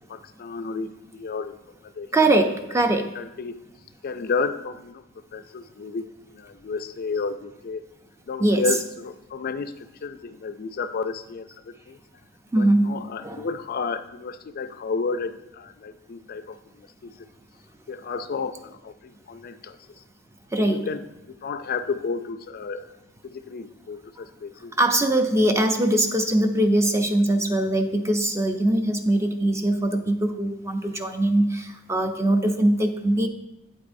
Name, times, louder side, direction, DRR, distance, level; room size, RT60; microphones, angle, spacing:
voice 1, 0.1-1.6 1.8-2.1 3.2-3.6 4.0-5.0 5.3-7.8 8.3-12.0 12.6-17.1 17.9-19.8 20.6-21.1 21.4-22.9 23.2-24.7, left 4 dB, 50° left, 10 dB, 0.4 m, -32 dB
voice 2, 2.1-3.1 8.4-8.6 12.5-12.9 13.2-13.5 20.5-20.8 24.8-33.3, right 1 dB, 15° right, 6 dB, 0.5 m, -22 dB
8.6 x 8.3 x 2.6 m, 0.90 s
head